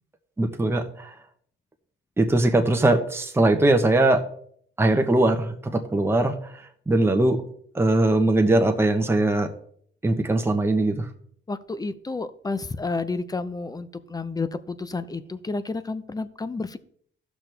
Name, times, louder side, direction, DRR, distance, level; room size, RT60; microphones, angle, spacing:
voice 1, 0.4-1.1 2.2-4.2 4.8-6.3 6.9-7.4 7.7-9.5 10.0-11.1, right 2 dB, 10° right, 4 dB, 1.1 m, -20 dB
voice 2, 11.5-16.8, left 3 dB, 20° left, 14 dB, 0.7 m, -30 dB
14.5 x 6.1 x 3.4 m, 0.62 s
cardioid pair, 90°, 20 cm